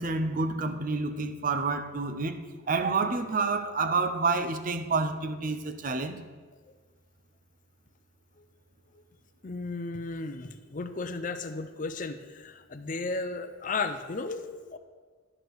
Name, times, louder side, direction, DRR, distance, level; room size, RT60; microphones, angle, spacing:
voice 1, 0.0-2.4 2.7-6.2, right 4 dB, 40° right, 8 dB, 0.6 m, -28 dB
voice 2, 9.4-14.8, left 3 dB, 40° left, 9 dB, 0.6 m, -34 dB
11.0 x 5.0 x 6.3 m, 1.5 s
head